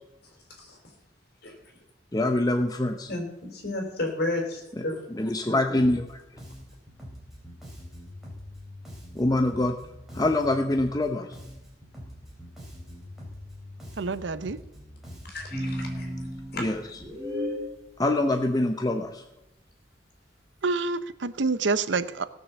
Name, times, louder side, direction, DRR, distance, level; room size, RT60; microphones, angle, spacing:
voice 1, 0.2-1.0 1.4-1.8 3.1-5.1 5.4-5.8 15.2-16.7, left 2 dB, 60° left, 2 dB, 3.8 m, -34 dB
voice 2, 2.1-3.1 5.2-6.2 9.1-9.8 10.1-11.4 16.6-16.7 18.0-19.2, left 1 dB, 20° left, 4 dB, 0.8 m, -24 dB
Bass guitar, 5.8-6.1 6.4-11.1 11.3-15.6, left 1 dB, ahead, 4.3 m, -44 dB
voice 3, 14.0-14.6 20.6-22.2, right 4 dB, 80° right, 14 dB, 0.7 m, -27 dB
sound 1, 15.5-17.7, equal, 20° right, 5.1 m, -33 dB
17.5 x 6.6 x 7.0 m, 0.87 s
head